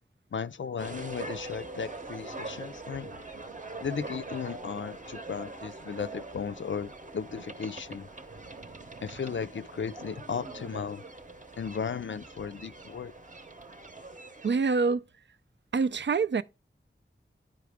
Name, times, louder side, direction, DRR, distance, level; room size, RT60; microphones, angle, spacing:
voice 1, 0.3-3.1 3.8-8.1 9.0-11.0 11.6-13.1, left 6 dB, 70° left, 0.4 m, -35 dB
sound 1, 0.8-14.6, right 3 dB, 40° right, 0.8 m, -43 dB
voice 2, 14.4-15.0 15.7-16.4, right 4 dB, 65° right, 0.4 m, -25 dB
10.0 x 4.8 x 3.4 m
wide cardioid pair, 45°, 20 cm